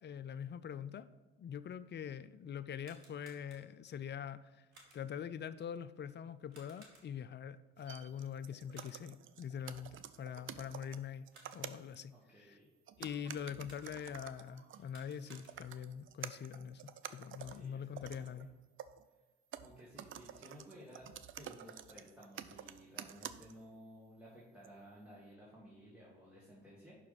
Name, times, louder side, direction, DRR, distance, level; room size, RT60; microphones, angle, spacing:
voice 1, 0.0-1.1 1.4-4.7 4.9-11.3 11.5-12.6 13.0-18.5, left 8 dB, 35° left, 14 dB, 0.5 m, -44 dB
sound 1, 2.7-3.9 4.7-5.3 6.5-7.4 8.7-9.3 11.1-11.8 13.6-14.2 14.7-15.9, right 2 dB, 90° right, 1.2 m, -63 dB
sound 2, 7.8-12.0 12.9-19.1 19.5-23.8 24.6-24.7, right 10 dB, 40° right, 0.5 m, -50 dB
voice 2, 12.1-12.7 17.4-18.4 19.6-27.0, equal, 5° right, -6 dB, 2.1 m, -56 dB
5.8 x 4.9 x 5.7 m, 1.2 s
hypercardioid pair, 55°, 31 cm